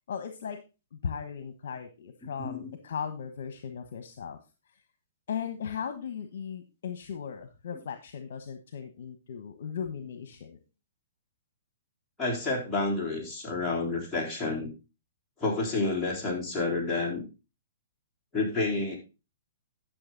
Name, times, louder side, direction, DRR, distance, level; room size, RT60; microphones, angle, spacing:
voice 1, 0.1-0.6 0.9-4.4 5.3-10.6, left 7 dB, 65° left, 8 dB, 1.2 m, -37 dB
voice 2, 2.4-2.7 12.2-14.7 15.4-17.2 18.3-19.0, left 3 dB, 10° left, -5 dB, 3.9 m, -29 dB
12.0 x 6.3 x 3.9 m, 0.29 s
hypercardioid pair, 150°, 0 cm